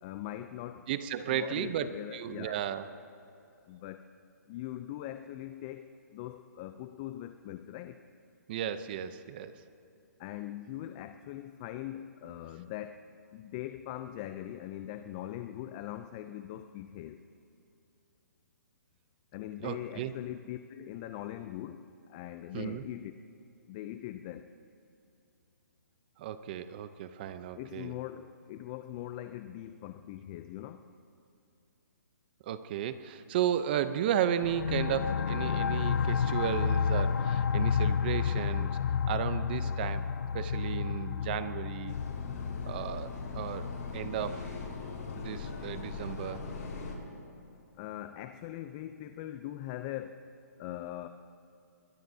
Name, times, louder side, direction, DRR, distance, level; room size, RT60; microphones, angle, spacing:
voice 1, 0.0-0.9 1.3-2.6 3.7-4.1 4.5-8.0 10.2-17.2 19.3-23.1 23.7-24.5 27.5-30.9 47.8-50.3 50.6-51.1, left 13 dB, 25° left, 9 dB, 0.4 m, -41 dB
voice 2, 0.9-2.8 8.5-9.6 19.6-20.1 22.5-22.8 26.2-27.9 32.4-38.8 39.1-40.1 40.3-42.0 42.7-44.6 45.2-46.5, right 10 dB, 30° right, 12 dB, 0.6 m, -34 dB
sound 1, 34.4-45.8, left 7 dB, 85° left, 0.5 m, -31 dB
sound 2, 41.9-47.0, left 4 dB, 60° left, 4.1 m, -40 dB
22.0 x 21.5 x 2.7 m, 2.7 s
hypercardioid pair, 160°, 10 cm